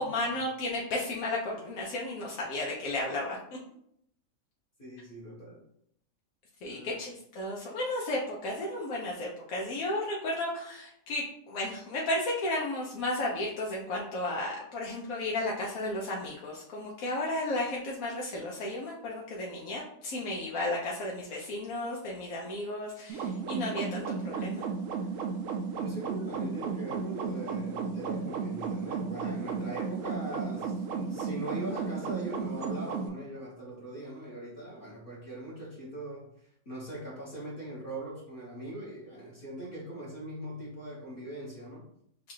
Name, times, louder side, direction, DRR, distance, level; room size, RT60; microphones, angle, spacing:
voice 1, 0.0-3.6 6.6-24.6, left 1 dB, 75° left, -3 dB, 1.2 m, -33 dB
voice 2, 4.8-5.6 6.6-7.0 25.8-41.9, right 1 dB, 40° left, -7 dB, 1.3 m, -41 dB
sound 1, 23.1-33.1, right 5 dB, 70° right, 0.9 m, -34 dB
3.8 x 2.4 x 4.4 m, 0.70 s
omnidirectional pair, 1.5 m